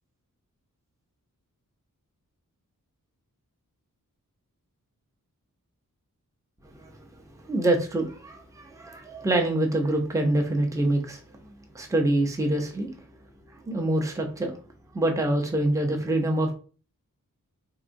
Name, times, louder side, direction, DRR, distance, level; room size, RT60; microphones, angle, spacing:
voice 1, 7.4-11.2 11.7-12.9 13.7-14.5 14.9-16.5, right 1 dB, 10° right, 3 dB, 0.6 m, -25 dB
3.7 x 2.4 x 2.5 m, 0.37 s
wide cardioid pair, 80°, 34 cm